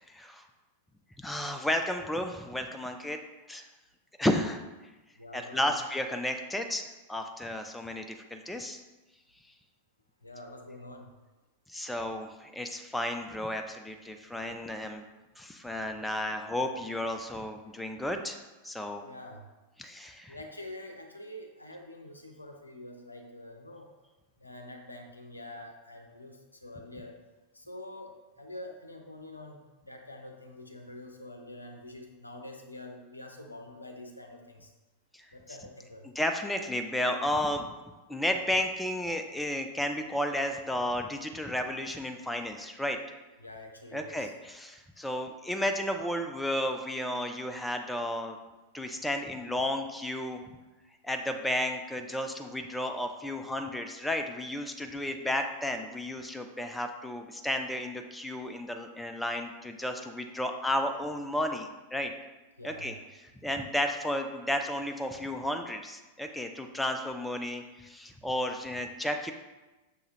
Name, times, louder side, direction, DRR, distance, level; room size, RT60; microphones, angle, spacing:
voice 1, 0.1-0.4 1.2-3.2 3.5-3.7 4.2-4.6 5.3-6.8 7.1-8.8 11.7-15.0 15.4-18.4 18.6-19.1 19.8-20.4 35.1-35.3 36.2-37.7 38.1-43.0 43.9-48.4 48.7-50.4 51.0-62.1 62.6-62.9 63.2-69.3, left 1 dB, 5° left, 5 dB, 0.3 m, -33 dB
voice 2, 5.2-5.8 10.2-11.1 19.0-19.5 20.3-23.9 24.4-27.2 27.5-28.1 28.4-29.6 29.8-34.7 35.3-36.1 43.4-44.3 62.6-63.0, left 1 dB, 85° left, 3 dB, 0.5 m, -46 dB
6.5 x 2.3 x 3.1 m, 1.1 s
figure-of-eight pair, 90°, 0 cm